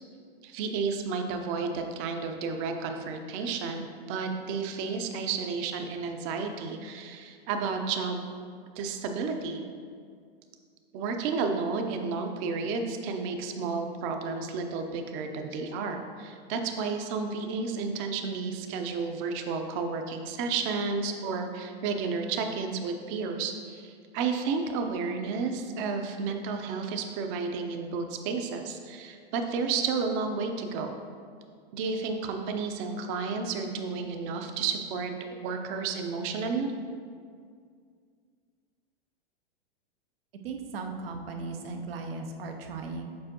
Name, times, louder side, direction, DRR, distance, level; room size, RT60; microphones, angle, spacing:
voice 1, 0.4-8.2 8.8-9.6 10.9-30.9 31.7-35.1 35.4-36.7, right 4 dB, 40° right, 5 dB, 0.6 m, -32 dB
voice 2, 40.4-43.0, right 3 dB, 85° right, 4 dB, 0.8 m, -37 dB
7.5 x 4.4 x 2.9 m, 2.1 s
hypercardioid pair, 125°, 29 cm